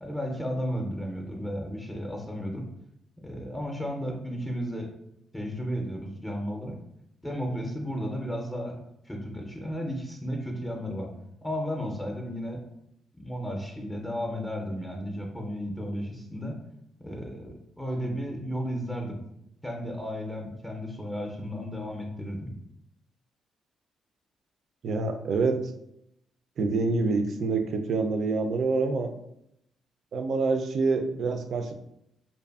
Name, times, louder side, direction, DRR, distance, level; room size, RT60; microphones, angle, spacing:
voice 1, 0.0-2.7 3.2-4.9 5.3-6.8 7.2-8.8 9.1-11.1 11.4-12.6 13.1-16.5 17.0-19.2 19.6-22.5, equal, 10° left, 1 dB, 0.5 m, -33 dB
voice 2, 24.8-25.6 26.6-29.1 30.1-31.7, right 3 dB, 60° right, 6 dB, 0.3 m, -26 dB
2.5 x 2.5 x 2.3 m, 0.78 s
cardioid pair, 80°, 0 cm